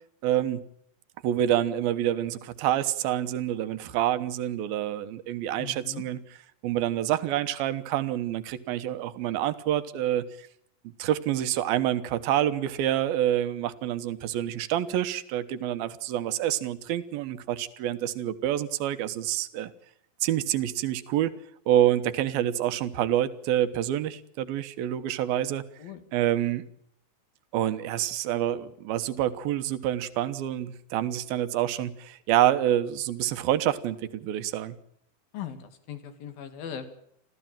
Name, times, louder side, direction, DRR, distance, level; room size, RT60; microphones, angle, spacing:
voice 1, 0.2-0.6 1.2-6.2 6.6-10.5 11.0-19.7 20.2-21.3 21.7-25.6 26.1-26.7 27.5-34.8, right 12 dB, 80° right, 11 dB, 3.0 m, -27 dB
voice 2, 5.6-6.0 25.8-26.0 35.3-36.9, left 8 dB, 75° left, 9 dB, 4.0 m, -39 dB
29.5 x 14.0 x 9.0 m, 0.71 s
omnidirectional pair, 4.3 m